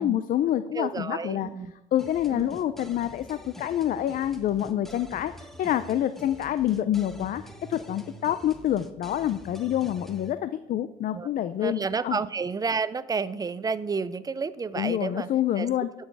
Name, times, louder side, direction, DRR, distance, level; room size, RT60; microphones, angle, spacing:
voice 1, 0.0-1.5 1.9-7.4 7.7-12.2 14.8-15.9, left 11 dB, 55° left, 12 dB, 0.5 m, -27 dB
voice 2, 0.7-1.7 2.3-2.6 11.1-11.3 11.6-15.3 15.6-15.7, right 5 dB, 20° right, 16 dB, 0.5 m, -30 dB
sound 1, 2.0-10.3, equal, ahead, 1.1 m, -46 dB
13.5 x 6.4 x 4.7 m, 1.1 s
cardioid pair, 110°, 17 cm